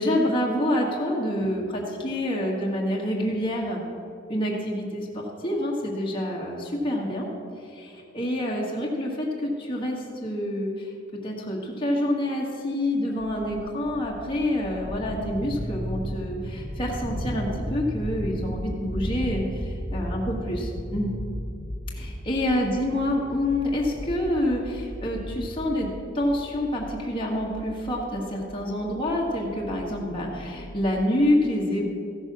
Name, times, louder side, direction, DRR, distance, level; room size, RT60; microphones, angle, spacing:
voice 1, 0.0-3.8 4.3-7.3 7.7-10.9 11.2-20.6 20.9-21.1 21.9-25.9 26.1-31.9, left 1 dB, 25° left, -3 dB, 1.7 m, -27 dB
sound 1, 13.2-31.0, equal, 20° right, 1.7 m, -35 dB
15.0 x 6.7 x 6.1 m, 2.6 s
head